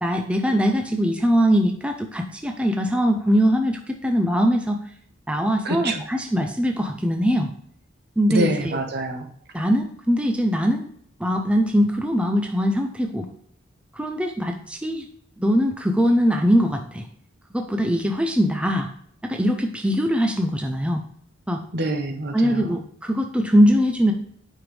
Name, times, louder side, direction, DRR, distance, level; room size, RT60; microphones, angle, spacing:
voice 1, 0.0-4.8 5.3-7.5 8.2-8.8 9.5-10.9 11.2-13.3 13.9-15.0 15.4-17.0 17.5-18.9 19.2-21.0 21.5-21.6 22.3-24.1, equal, 5° right, 3 dB, 0.6 m, -21 dB
voice 2, 5.6-6.0 8.3-9.3 21.7-22.7, right 1 dB, 55° right, 5 dB, 1.2 m, -26 dB
8.8 x 5.7 x 3.4 m, 0.63 s
head